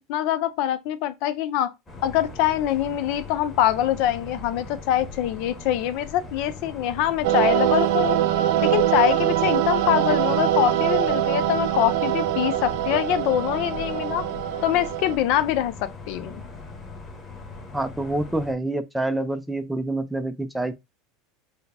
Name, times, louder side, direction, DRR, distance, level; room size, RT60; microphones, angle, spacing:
voice 1, 0.1-1.7 2.0-8.2 8.6-14.2 14.6-16.4, left 12 dB, 60° left, 0.5 m, -24 dB
sound 1, 1.9-18.5, left 3 dB, 15° left, 1.3 m, -40 dB
sound 2, 7.2-15.2, right 12 dB, 70° right, 0.5 m, -23 dB
voice 2, 17.7-20.7, right 2 dB, 5° right, 0.4 m, -27 dB
4.7 x 2.1 x 3.4 m
supercardioid pair, 130°, 0 cm